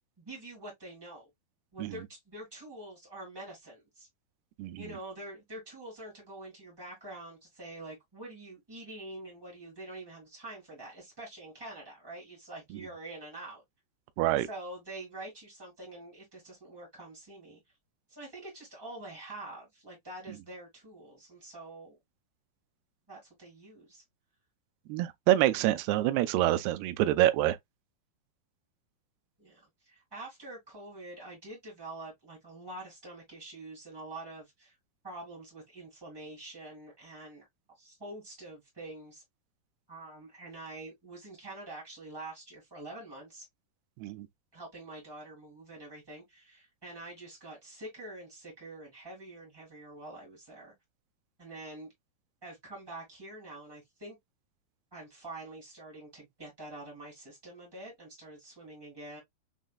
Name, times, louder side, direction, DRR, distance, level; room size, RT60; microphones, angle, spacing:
voice 1, 0.2-1.3 1.7-4.1 4.8-13.6 14.2-17.6 18.1-22.0 23.1-24.0 29.4-34.7 35.0-37.5 37.8-39.2 39.9-43.4 44.5-50.7 51.4-51.9 52.4-54.2 54.9-59.2, right 2 dB, 30° right, 0.4 m, -46 dB
voice 2, 14.2-14.5 24.9-27.6 44.0-44.3, right 14 dB, 85° right, 2.4 m, -26 dB
6.2 x 2.2 x 2.2 m
omnidirectional pair, 4.6 m